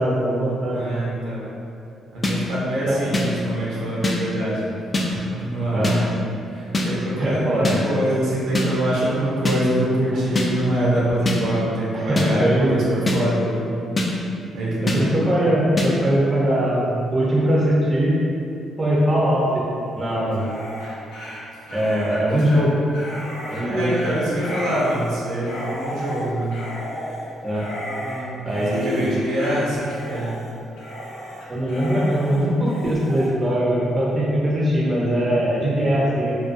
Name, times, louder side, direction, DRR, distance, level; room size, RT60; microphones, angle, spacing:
voice 1, 0.0-0.8 2.8-3.0 5.7-6.0 7.0-7.8 10.1-10.2 11.9-13.1 14.8-18.2 18.8-19.5 20.0-20.5 21.7-22.8 23.5-24.1 27.4-27.7 28.4-29.1 31.5-36.3, equal, 25° right, -6 dB, 0.5 m, -21 dB
voice 2, 0.7-1.5 2.1-4.6 5.0-6.1 6.5-13.8 14.5-15.0 21.7-22.2 23.6-26.5 28.0-30.4, right 1 dB, 80° right, -7 dB, 0.7 m, -25 dB
sound 1, 2.2-2.4 3.1-3.3 4.0-4.2 4.9-5.1 5.8-6.0 6.7-6.9 7.6-7.8 8.5-8.7 9.4-9.6 10.4-10.5 11.3-11.4 12.2-12.3 13.1-13.2 14.0-14.1 14.9-15.0 15.8-15.9, left 2 dB, 30° left, 0.3 m, -21 dB
Dog, 20.3-33.3, equal, 90° left, 0.7 m, -34 dB
2.4 x 2.2 x 2.5 m, 2.6 s
cardioid pair, 90°, 0 cm